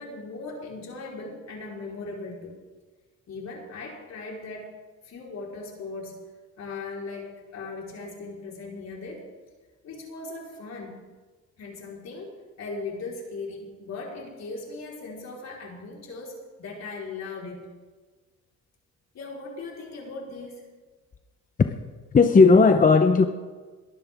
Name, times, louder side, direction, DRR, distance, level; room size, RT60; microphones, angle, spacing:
voice 1, 0.0-2.5 3.3-4.7 5.0-6.1 6.6-9.2 9.8-11.0 11.6-12.3 12.6-17.7 19.1-20.7, left 3 dB, 60° left, -2 dB, 4.3 m, -38 dB
voice 2, 22.1-23.3, left 4 dB, 25° left, 7 dB, 0.8 m, -16 dB
22.0 x 11.0 x 3.6 m, 1.3 s
cardioid pair, 90°, 30 cm